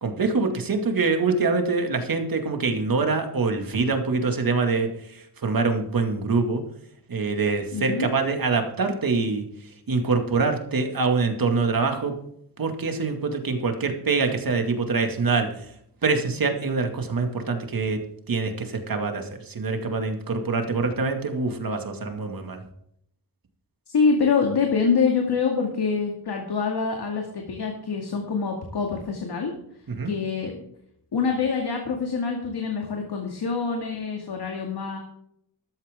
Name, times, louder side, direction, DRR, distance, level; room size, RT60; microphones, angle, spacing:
voice 1, 0.0-6.6 7.1-9.5 9.9-12.1 12.6-15.5 16.0-18.0 18.3-22.6 29.9-30.1, right 4 dB, 55° right, 5 dB, 2.3 m, -25 dB
voice 2, 7.7-8.1 23.9-29.5 30.0-30.5 31.1-35.0, left 5 dB, 70° left, 1 dB, 2.3 m, -25 dB
14.0 x 13.0 x 3.7 m, 0.71 s
wide cardioid pair, 150°, 41 cm